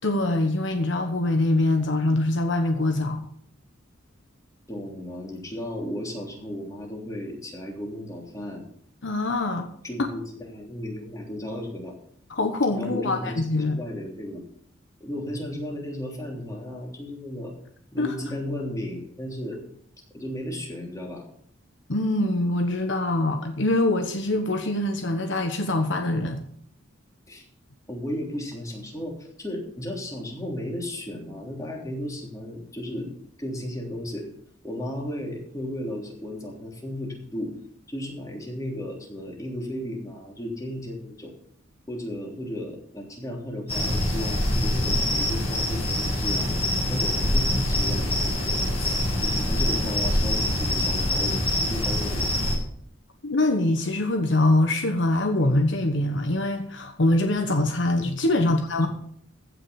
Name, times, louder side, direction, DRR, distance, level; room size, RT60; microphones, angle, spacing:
voice 1, 0.0-3.2 9.0-9.7 12.3-13.8 18.0-18.1 21.9-26.4 53.2-58.9, left 2 dB, 65° left, 6 dB, 1.2 m, -24 dB
voice 2, 4.7-8.6 9.8-11.9 12.7-13.4 13.7-14.4 15.0-17.5 17.9-19.6 20.1-21.3 27.3-27.4 27.9-33.1 33.4-34.3 34.6-37.5 37.9-41.3 41.9-46.4 46.9-52.4 58.4-58.9, left 1 dB, 15° left, -1 dB, 3.3 m, -34 dB
sound 1, 43.7-52.5, left 1 dB, 30° left, 5.5 m, -24 dB
15.5 x 6.1 x 7.0 m, 0.65 s
head